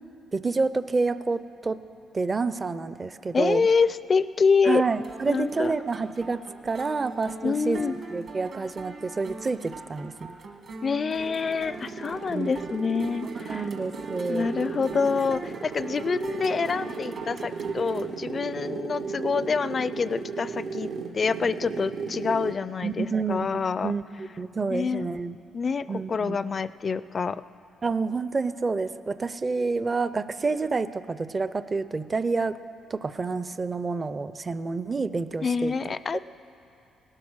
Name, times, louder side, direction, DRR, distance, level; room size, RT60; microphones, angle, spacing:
voice 1, 0.3-1.8 2.1-3.6 4.7-7.8 8.1-10.3 12.3-12.5 13.5-14.5 22.8-23.5 23.8-25.4 25.9-26.4 27.8-32.6 32.9-35.7, right 4 dB, 30° right, 14 dB, 0.5 m, -28 dB
voice 2, 3.3-4.8 5.3-5.7 7.4-8.0 10.8-13.7 14.3-23.9 24.7-25.1 25.5-27.4 35.4-36.2, left 5 dB, 40° left, 16 dB, 0.4 m, -26 dB
sound 1, 4.9-18.1, right 3 dB, 55° right, 1.4 m, -42 dB
sound 2, 10.9-22.7, right 5 dB, 75° right, 0.9 m, -35 dB
18.0 x 12.0 x 6.3 m, 2.8 s
cardioid pair, 90°, 0 cm